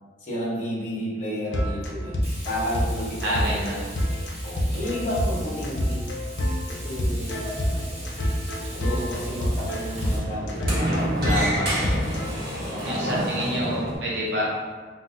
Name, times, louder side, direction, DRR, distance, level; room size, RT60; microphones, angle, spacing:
voice 1, 0.2-2.2 2.4-3.7 4.4-6.1 6.7-7.4 8.7-11.8 12.7-13.9, equal, 45° left, -6 dB, 1.0 m, -32 dB
sound 1, 1.5-12.3, equal, 70° left, 0.5 m, -27 dB
Frying (food), 2.2-10.2, right 1 dB, 35° right, 1.0 m, -42 dB
voice 2, 3.2-3.8 11.3-11.7 12.8-14.5, equal, 80° right, -5 dB, 0.5 m, -28 dB
Sliding door, 6.9-14.0, equal, 60° right, 1.0 m, -30 dB
2.7 x 2.1 x 3.7 m, 1.5 s
head